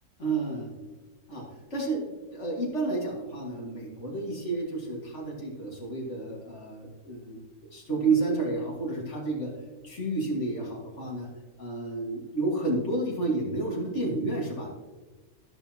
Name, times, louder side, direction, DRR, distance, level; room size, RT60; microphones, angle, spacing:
voice 1, 0.2-0.7 1.3-1.4 1.7-2.0 2.3-7.4 7.7-9.5 9.8-11.3 11.6-14.7, right 3 dB, 50° left, -2 dB, 2.2 m, -30 dB
13.5 x 6.3 x 2.8 m, 1.3 s
omnidirectional pair, 1.6 m